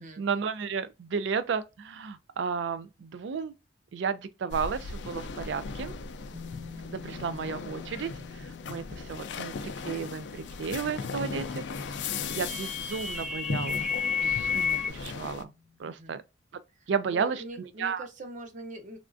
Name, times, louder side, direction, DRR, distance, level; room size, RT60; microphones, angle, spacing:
voice 1, 0.0-3.5 3.9-5.9 6.8-11.6 12.3-13.8 14.2-15.5 15.8-16.2 16.9-17.4 17.8-18.0, right 6 dB, 70° right, 0.4 m, -33 dB
sound 1, 4.5-15.4, left 4 dB, 65° left, 0.4 m, -38 dB
sound 2, 6.3-15.8, left 5 dB, 20° right, 1.0 m, -50 dB
sound 3, 11.7-14.9, left 6 dB, 5° right, 0.5 m, -31 dB
voice 2, 15.8-16.2 16.8-19.0, right 1 dB, 40° right, 0.7 m, -43 dB
3.4 x 2.4 x 2.4 m
head